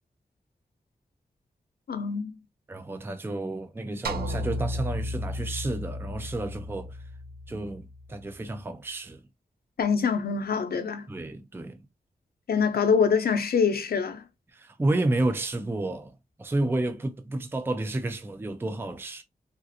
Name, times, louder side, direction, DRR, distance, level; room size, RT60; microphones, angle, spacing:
voice 1, 1.9-2.3 9.8-11.1 12.5-14.2, left 6 dB, 90° left, 0.7 m, -24 dB
voice 2, 2.7-7.1 7.5-9.2 11.1-11.9 14.5-19.2, right 2 dB, 15° right, 0.4 m, -31 dB
sound 1, 4.0-8.5, left 1 dB, 90° right, 0.6 m, -34 dB
3.6 x 2.5 x 2.6 m
wide cardioid pair, 115°, 16 cm